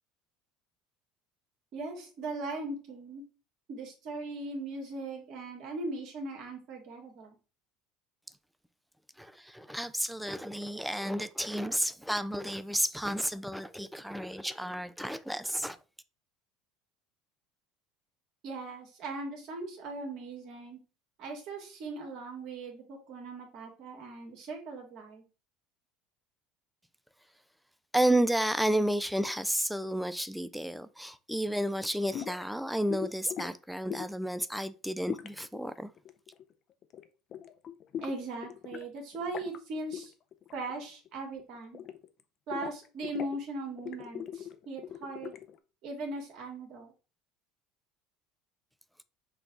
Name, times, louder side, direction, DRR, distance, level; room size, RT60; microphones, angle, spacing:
voice 1, 1.7-3.2 3.7-7.4 18.4-20.8 21.2-25.2 38.0-40.1 40.5-41.8 42.5-45.3 45.8-46.9, right 2 dB, 55° right, 1.7 m, -39 dB
voice 2, 9.2-15.8 27.9-35.9, right 1 dB, ahead, 0.4 m, -31 dB
sound 1, 32.1-32.4 32.9-33.5 33.9-34.3 35.1-36.5 36.8-37.0 37.3-38.9 39.1-39.6 39.9-40.1 40.3-40.8 41.1-42.2 42.5-43.4 43.8-45.6, left 9 dB, 45° left, 0.5 m, -40 dB
5.9 x 2.3 x 3.8 m
supercardioid pair, 100°, 0 cm